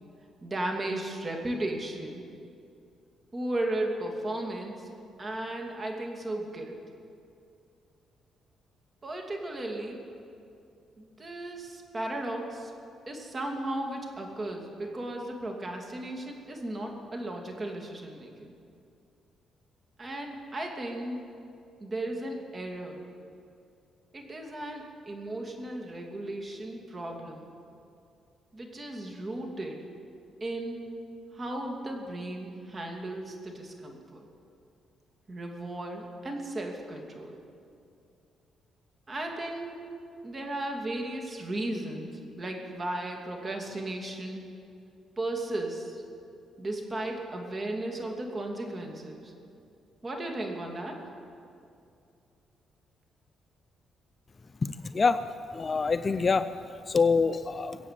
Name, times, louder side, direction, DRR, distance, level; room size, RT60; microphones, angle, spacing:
voice 1, 0.4-2.3 3.3-4.9 5.2-6.8 9.0-10.0 11.0-12.7 13.1-18.5 20.0-21.3 21.8-23.1 24.1-27.5 28.5-29.9 30.4-30.9 31.3-34.3 35.3-37.4 39.1-40.0 40.2-44.4 45.2-46.0 46.6-49.3 50.0-51.1, right 1 dB, 30° right, 2 dB, 2.8 m, -35 dB
voice 2, 54.6-55.2 55.5-56.4 56.9-57.8, left 4 dB, 35° left, 11 dB, 0.5 m, -25 dB
22.5 x 8.3 x 7.7 m, 2.5 s
cardioid pair, 90°, 0 cm